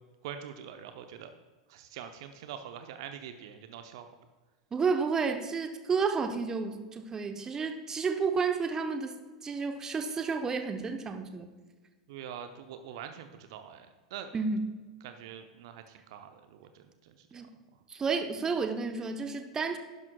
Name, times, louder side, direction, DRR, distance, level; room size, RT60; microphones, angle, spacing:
voice 1, 0.2-1.3 1.7-4.1 12.1-14.3 15.0-17.4, right 9 dB, 55° right, 7 dB, 0.7 m, -44 dB
voice 2, 4.7-9.2 9.4-11.5 14.3-14.7 17.3-17.5 17.9-19.8, right 5 dB, 20° right, 6 dB, 0.9 m, -31 dB
11.5 x 10.5 x 2.3 m, 1.3 s
figure-of-eight pair, 90°, 3 cm